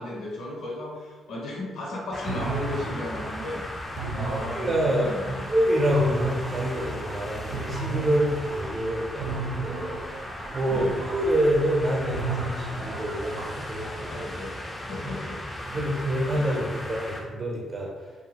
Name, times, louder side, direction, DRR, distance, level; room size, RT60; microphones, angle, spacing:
voice 1, 0.0-5.4 10.7-11.0 14.1-14.6 14.9-15.4 15.7-15.8 16.3-16.6, left 1 dB, 75° left, -4 dB, 1.0 m, -35 dB
sound 1, 2.1-17.2, left 1 dB, 10° left, 0.5 m, -37 dB
sound 2, 2.3-8.9 9.2-14.2, right 3 dB, 85° right, 0.5 m, -34 dB
voice 2, 4.5-5.1 5.5-10.0 10.5-14.3 15.7-17.9, equal, 35° right, -2 dB, 0.8 m, -26 dB
2.6 x 2.4 x 2.9 m, 1.3 s
cardioid pair, 90°, 0 cm